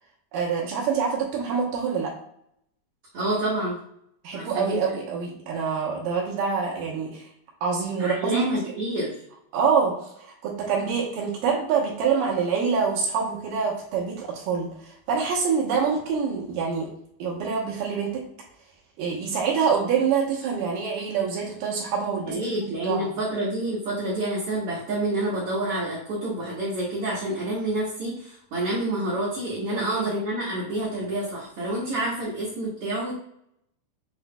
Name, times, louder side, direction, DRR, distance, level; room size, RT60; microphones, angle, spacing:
voice 1, 0.3-2.1 4.2-7.3 7.6-8.7 9.5-16.9 17.2-18.2 19.0-23.1 29.7-30.1, right 6 dB, 80° right, -3 dB, 2.7 m, -26 dB
voice 2, 3.1-3.8 4.3-5.0 8.0-9.2 22.3-33.1, right 1 dB, 60° right, -7 dB, 1.7 m, -28 dB
6.9 x 3.1 x 2.3 m, 0.71 s
omnidirectional pair, 3.8 m